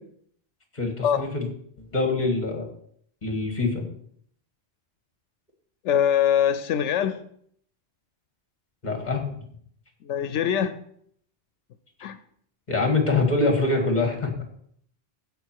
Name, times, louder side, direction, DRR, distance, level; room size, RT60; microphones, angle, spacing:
voice 1, 0.7-1.5 1.9-2.7 3.2-3.9 8.8-9.2 12.7-14.3, left 3 dB, 40° left, 3 dB, 2.1 m, -24 dB
voice 2, 5.8-7.2 10.0-10.8 12.0-12.2, left 9 dB, 85° left, 11 dB, 0.9 m, -23 dB
15.0 x 5.3 x 4.7 m, 0.65 s
omnidirectional pair, 1.2 m